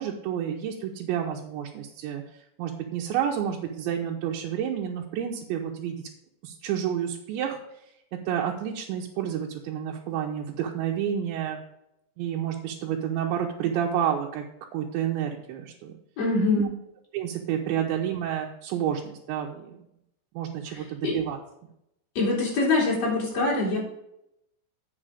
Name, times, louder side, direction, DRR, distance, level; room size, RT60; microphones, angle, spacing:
voice 1, 0.0-2.2 2.6-6.0 6.4-7.6 8.3-11.6 12.2-14.4 14.7-15.9 17.1-19.8 20.3-21.4, right 9 dB, 85° right, -1 dB, 3.1 m, -29 dB
voice 2, 16.2-16.7 20.7-21.2 22.2-23.8, left 3 dB, 40° left, -4 dB, 3.6 m, -24 dB
8.8 x 5.9 x 4.9 m, 0.80 s
omnidirectional pair, 5.1 m